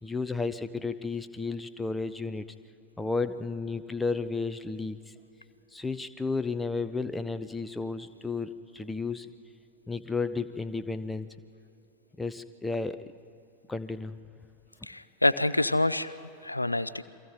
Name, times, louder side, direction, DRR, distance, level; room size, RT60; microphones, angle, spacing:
voice 1, 0.0-2.4 3.0-5.0 5.7-9.3 9.9-11.3 12.2-13.1 13.7-14.2, left 4 dB, 10° left, 11 dB, 0.8 m, -32 dB
voice 2, 14.8-16.2 16.4-17.0, left 2 dB, 85° left, 16 dB, 0.5 m, -26 dB
29.5 x 23.5 x 3.8 m, 2.9 s
figure-of-eight pair, 90°, 0 cm